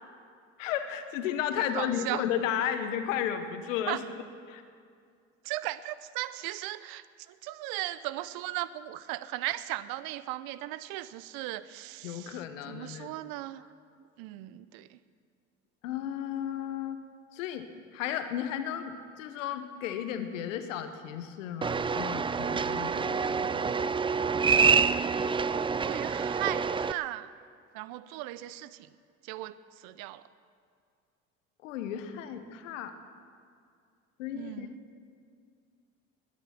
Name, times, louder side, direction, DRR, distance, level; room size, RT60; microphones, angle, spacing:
voice 1, 0.6-4.0 4.5-4.6 12.0-13.1 15.8-17.0 17.3-17.7 17.9-23.8 31.6-32.9 34.2-34.7, left 9 dB, 80° left, 9 dB, 1.2 m, -34 dB
voice 2, 1.6-2.3 3.9-4.0 5.4-13.7 14.2-15.0 25.8-27.3 27.7-28.9 29.2-30.2 34.3-34.8, right 16 dB, 65° right, 16 dB, 0.7 m, -37 dB
sound 1, 21.6-26.9, right 5 dB, 15° right, 0.4 m, -27 dB
20.5 x 9.9 x 6.0 m, 2.3 s
hypercardioid pair, 60°, 38 cm